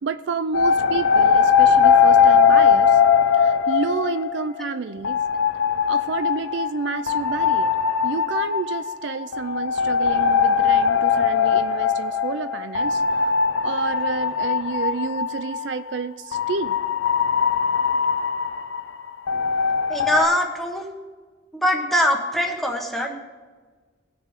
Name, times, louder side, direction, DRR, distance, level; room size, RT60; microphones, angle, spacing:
voice 1, 0.0-3.0 3.3-5.2 5.9-7.8 8.0-13.0 13.6-16.8, right 5 dB, 65° right, 12 dB, 0.4 m, -29 dB
sound 1, 0.5-4.7 5.0-15.7 16.3-20.3, left 6 dB, 85° left, 0.7 m, -20 dB
voice 2, 19.9-20.9 21.5-23.2, equal, ahead, 1 dB, 1.3 m, -22 dB
19.0 x 6.6 x 3.7 m, 1.4 s
head